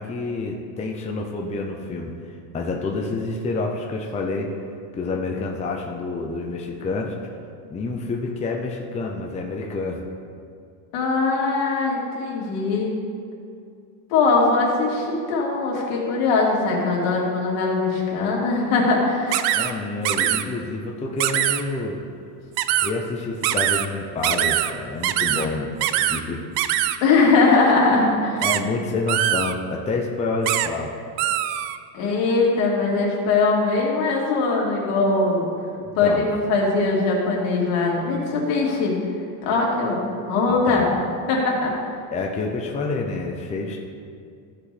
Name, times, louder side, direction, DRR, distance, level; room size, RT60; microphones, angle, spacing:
voice 1, 0.0-2.2 2.5-4.5 4.9-7.2 7.7-10.0 19.5-22.0 22.7-26.4 28.4-30.9 35.8-36.3 40.7-40.9 42.1-43.8, left 3 dB, 15° left, 0 dB, 0.6 m, -28 dB
voice 2, 10.9-12.9 14.1-19.5 27.0-28.5 31.9-35.5 35.9-36.2 36.5-39.0 39.4-40.0 40.3-40.9 41.3-41.7, left 3 dB, 75° left, -3 dB, 2.6 m, -21 dB
sound 1, 19.3-19.7 20.1-20.4 21.2-21.6 22.6-22.9 23.4-23.9 24.2-24.7 25.0-25.5 25.8-26.2 26.6-27.0 28.4-28.6 29.1-29.5 30.5-30.7 31.2-31.8, right 12 dB, 70° right, 0.6 m, -22 dB
15.0 x 5.1 x 4.2 m, 2.4 s
cardioid pair, 160°, 44 cm